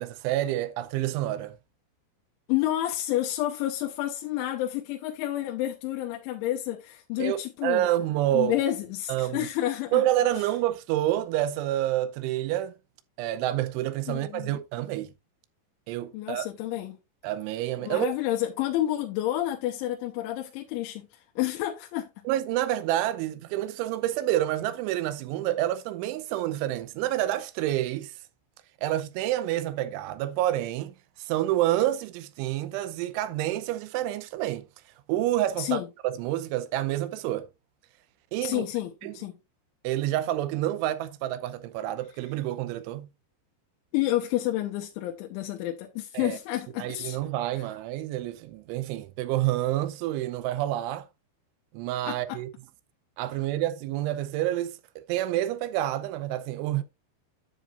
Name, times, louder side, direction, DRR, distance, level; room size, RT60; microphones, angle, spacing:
voice 1, 0.0-1.6 7.2-8.5 9.1-9.5 9.9-12.7 13.2-15.1 15.9-16.5 17.2-18.1 22.3-28.1 28.8-34.7 35.1-37.5 38.3-38.6 39.0-39.2 39.8-43.1 46.1-46.4 46.8-51.1 51.7-52.5 53.2-56.8, right 14 dB, 85° right, 3.2 m, -28 dB
voice 2, 2.5-7.9 8.3-10.0 14.1-14.6 16.1-17.0 17.8-22.2 35.6-35.9 38.4-39.3 43.9-47.2 47.5-47.6 52.1-52.4, left 14 dB, 85° left, 3.2 m, -30 dB
10.0 x 7.4 x 2.5 m
omnidirectional pair, 5.4 m